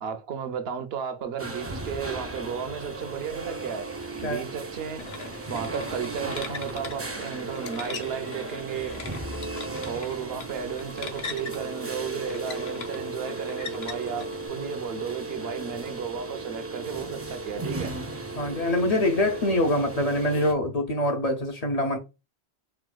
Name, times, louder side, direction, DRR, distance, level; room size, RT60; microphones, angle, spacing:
voice 1, 0.0-3.9 4.2-5.0 5.5-8.9 9.9-17.9, right 7 dB, 75° right, 0.8 m, -34 dB
sound 1, 1.4-20.5, right 2 dB, 25° right, 0.3 m, -36 dB
sound 2, 5.0-14.5, left 5 dB, 80° left, 0.9 m, -41 dB
voice 2, 18.4-22.0, left 1 dB, 50° left, 0.5 m, -24 dB
4.5 x 2.2 x 2.2 m
omnidirectional pair, 1.0 m